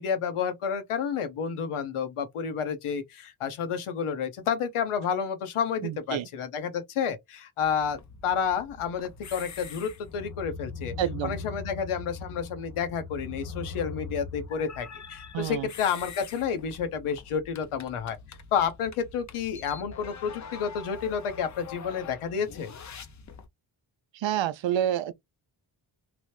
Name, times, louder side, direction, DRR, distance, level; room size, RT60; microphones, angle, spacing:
voice 1, 0.0-8.0 8.2-10.9 11.2-22.7, left 7 dB, 85° left, 0.9 m, -30 dB
voice 2, 5.8-6.3 11.0-11.4 15.3-15.7 24.1-25.1, right 11 dB, 65° right, 0.5 m, -28 dB
sound 1, 7.6-23.5, left 4 dB, 35° left, 0.5 m, -42 dB
3.0 x 2.0 x 3.1 m
cardioid pair, 65°, 49 cm